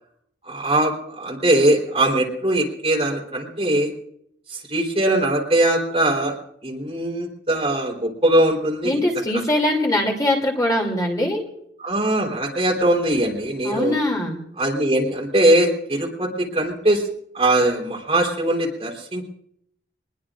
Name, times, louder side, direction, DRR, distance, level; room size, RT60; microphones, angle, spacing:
voice 1, 0.5-3.9 4.5-6.3 6.6-9.1 11.8-14.0 14.6-17.0 17.3-19.3, right 1 dB, 35° right, -1 dB, 3.7 m, -21 dB
voice 2, 8.8-11.4 13.6-14.4, left 1 dB, 20° left, 0 dB, 2.7 m, -22 dB
23.5 x 21.0 x 2.5 m, 0.71 s
head